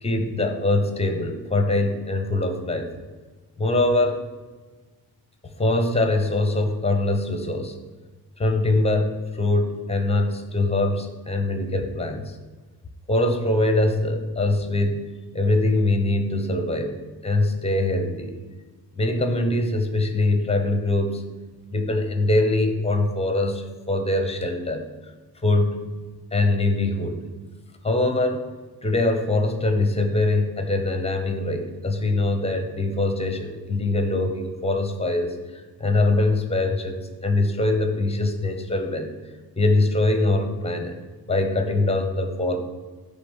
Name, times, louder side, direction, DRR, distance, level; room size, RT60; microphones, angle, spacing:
voice 1, 0.0-2.9 3.6-4.2 5.5-7.8 8.4-12.4 13.1-15.0 15.3-17.0 17.2-18.4 18.9-21.2 21.7-24.8 25.4-25.8 26.3-27.2 27.8-28.5 28.8-41.0 41.3-42.6, left 2 dB, 15° left, 6 dB, 0.9 m, -23 dB
11.5 x 3.9 x 7.2 m, 1.3 s
cardioid pair, 165°, 39 cm